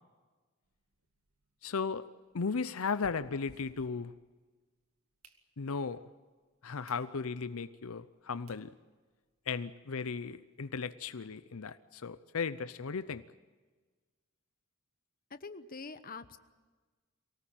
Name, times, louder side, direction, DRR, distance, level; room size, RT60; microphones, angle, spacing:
sound 1, 0.6-4.6 5.0-5.9 6.4-6.5 6.8-7.1 7.5-7.6 8.2-8.3 8.5-8.7 9.1-9.2 9.4-9.5 9.8-9.9 10.2-11.3, right 2 dB, 80° right, 2.1 m, -61 dB
voice 1, 1.6-2.0 2.3-4.1 5.6-6.0 6.6-8.7 9.5-13.2, left 5 dB, 75° left, 13 dB, 0.6 m, -36 dB
voice 2, 15.3-16.4, left 4 dB, 40° left, 11 dB, 1.0 m, -45 dB
24.0 x 18.0 x 9.0 m, 1.4 s
head